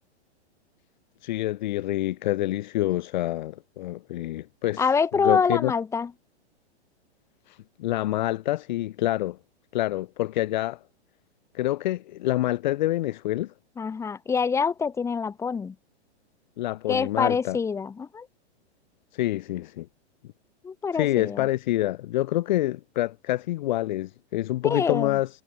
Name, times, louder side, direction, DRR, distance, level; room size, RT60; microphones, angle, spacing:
voice 1, 1.2-4.8 5.2-5.7 7.5-9.4 9.7-10.8 11.5-13.5 16.6-17.6 19.1-19.9 20.9-25.3, left 15 dB, 40° left, 3.5 m, -27 dB
voice 2, 4.8-6.1 13.8-15.7 16.9-18.3 20.6-21.5 24.6-25.2, left 5 dB, 10° left, 7.5 m, -26 dB
hypercardioid pair, 170°, 34 cm